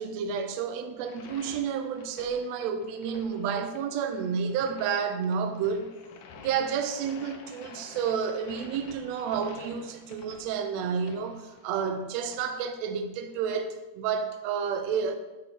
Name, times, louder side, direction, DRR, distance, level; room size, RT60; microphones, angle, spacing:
voice 1, 0.0-5.9 6.4-15.2, right 6 dB, 85° right, 1.5 m, -30 dB
sound 1, 0.9-13.6, left 5 dB, 75° left, 2.4 m, -50 dB
7.6 x 4.5 x 6.2 m
omnidirectional pair, 3.9 m